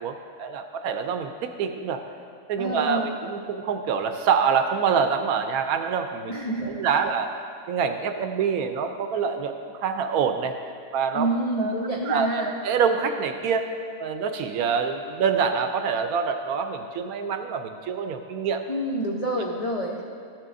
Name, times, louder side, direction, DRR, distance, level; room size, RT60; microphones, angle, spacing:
voice 1, 0.0-1.3 1.6-2.0 2.5-6.4 6.7-7.3 7.7-9.5 9.8-10.5 10.9-11.3 11.6-11.7 12.0-13.7 14.0-18.6, right 6 dB, 70° right, 7 dB, 1.0 m, -25 dB
voice 2, 2.6-3.1 6.3-6.8 11.1-12.5 18.7-20.0, right 1 dB, 70° left, -2 dB, 0.3 m, -27 dB
13.0 x 7.4 x 2.5 m, 2.4 s
omnidirectional pair, 1.7 m